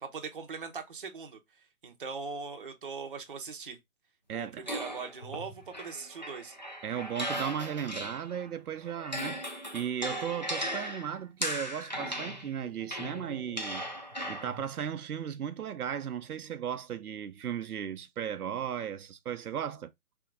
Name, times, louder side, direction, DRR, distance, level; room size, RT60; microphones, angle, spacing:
voice 1, 0.0-1.4 1.8-3.8 4.3-6.6, right 5 dB, 40° right, 0.7 m, -40 dB
voice 2, 4.3-4.7 6.8-9.4 9.7-13.8 14.3-19.9, right 9 dB, 90° right, 0.7 m, -36 dB
sound 1, 4.7-8.5 8.8-14.7, equal, 35° left, 0.4 m, -37 dB
3.5 x 2.9 x 3.7 m
hypercardioid pair, 175°, 43 cm